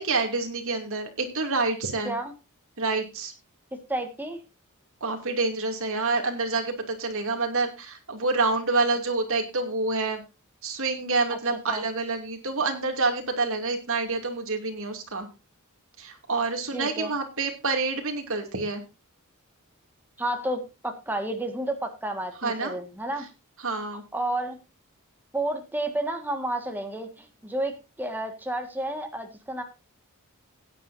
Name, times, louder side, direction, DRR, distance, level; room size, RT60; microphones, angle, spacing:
voice 1, 0.0-2.1 2.8-3.3 5.0-10.2 10.6-15.3 16.0-18.8 22.4-22.7 23.6-24.0, right 3 dB, 65° right, 4 dB, 2.6 m, -27 dB
voice 2, 3.9-4.4 11.3-11.8 16.7-17.1 20.2-23.3 24.1-24.6 25.3-29.6, right 1 dB, 10° right, 5 dB, 1.7 m, -31 dB
16.5 x 9.8 x 2.7 m, 0.26 s
head